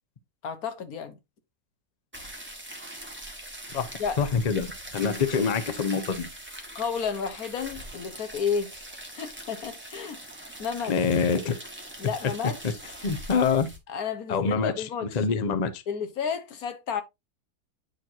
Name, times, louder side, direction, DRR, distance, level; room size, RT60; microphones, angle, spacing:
voice 1, 0.4-1.2 4.0-4.2 5.0-5.2 6.7-8.7 9.2-10.2 10.6-11.0 12.0-12.8 13.9-15.2 15.9-17.0, left 6 dB, 65° left, 1.4 m, -32 dB
sound 1, 2.1-13.8, right 1 dB, 5° right, 1.4 m, -42 dB
voice 2, 4.2-4.7 4.9-6.3 10.9-11.6 13.0-13.7 14.3-14.7 15.1-15.8, left 5 dB, 45° left, 0.5 m, -25 dB
9.3 x 4.5 x 2.7 m
omnidirectional pair, 1.8 m